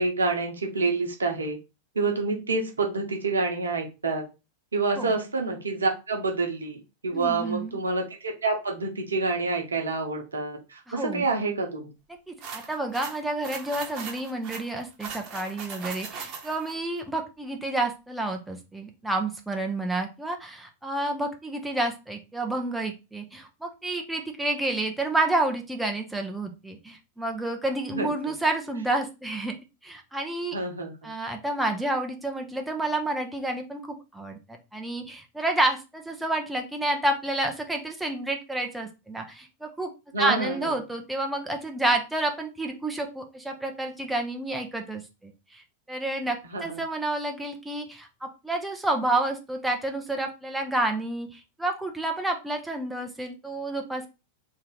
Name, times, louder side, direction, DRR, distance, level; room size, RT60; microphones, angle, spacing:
voice 1, 0.0-1.6 1.9-4.2 4.7-11.9 27.9-28.3 30.5-31.1 40.1-40.7 46.4-46.8, right 3 dB, 75° right, 3 dB, 1.0 m, -28 dB
voice 2, 7.1-7.8 10.9-11.3 12.3-29.6 29.8-30.6 31.0-33.8 34.1-34.4 34.7-39.9 40.2-45.6 45.9-54.1, right 2 dB, 5° right, 3 dB, 0.7 m, -29 dB
sound 1, 12.4-16.7, right 5 dB, 40° right, 1.0 m, -39 dB
3.2 x 2.7 x 3.8 m, 0.28 s
figure-of-eight pair, 90°, 0 cm